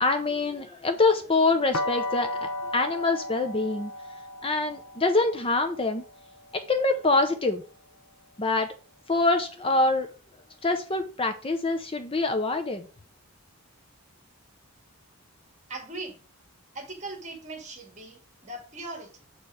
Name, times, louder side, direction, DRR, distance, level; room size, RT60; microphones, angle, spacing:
voice 1, 0.0-3.9 4.4-6.0 6.5-7.6 8.4-8.7 9.1-10.1 10.6-12.9, left 3 dB, 25° left, 0.6 m, -25 dB
sound 1, 1.7-7.6, left 1 dB, 75° left, 0.9 m, -35 dB
voice 2, 15.7-16.2 16.7-19.2, right 2 dB, 30° right, 1.9 m, -39 dB
6.9 x 4.5 x 4.9 m
head